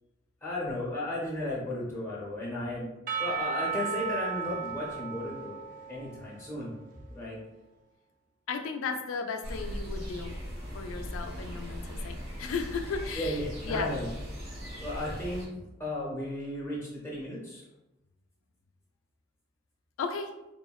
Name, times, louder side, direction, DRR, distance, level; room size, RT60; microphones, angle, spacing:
voice 1, 0.4-2.9 3.2-5.6 5.9-6.7 7.1-7.4 13.2-14.1 14.8-15.5 15.8-17.6, left 1 dB, 15° left, -5 dB, 0.5 m, -34 dB
Percussion / Church bell, 3.1-7.0, right 7 dB, 40° right, 0.3 m, -35 dB
voice 2, 8.5-10.4 10.7-14.0 20.0-20.3, left 5 dB, 90° left, 5 dB, 0.3 m, -35 dB
sound 1, 9.4-15.5, equal, 90° right, 1.3 m, -39 dB
3.6 x 2.1 x 2.3 m, 0.95 s
head